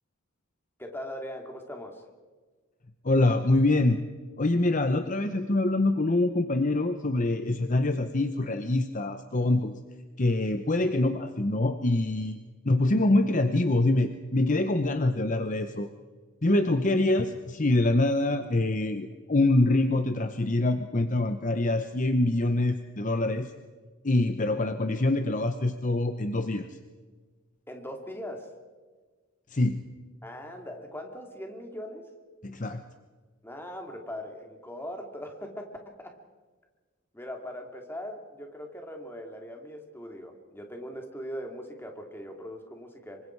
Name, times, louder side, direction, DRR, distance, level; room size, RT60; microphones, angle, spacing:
voice 1, 0.8-2.0 27.7-28.5 30.2-32.1 33.4-36.1 37.1-43.2, equal, 10° left, 3 dB, 2.8 m, -40 dB
voice 2, 3.0-4.0 4.4-9.8 10.2-12.4 12.6-15.9 16.4-23.5 24.0-26.8 29.5-29.8 32.4-32.8, left 2 dB, 35° left, 8 dB, 0.9 m, -25 dB
26.0 x 24.5 x 4.7 m, 1.4 s
head